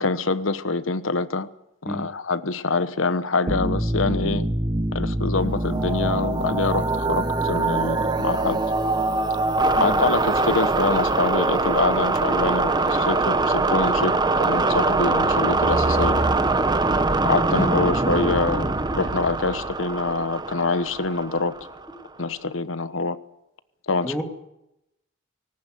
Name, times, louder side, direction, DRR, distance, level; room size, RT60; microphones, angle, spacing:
voice 1, 0.0-1.5 1.8-4.5 4.9-8.6 9.8-16.2 17.2-21.6 22.2-23.2 23.9-24.2, left 3 dB, 85° left, 1.2 m, -25 dB
voice 2, 1.9-2.1 9.7-10.0 15.9-16.2 24.0-24.2, equal, 5° left, 2.5 m, -31 dB
sound 1, 3.5-21.9, right 2 dB, 20° right, 1.1 m, -23 dB
18.5 x 18.5 x 9.4 m
head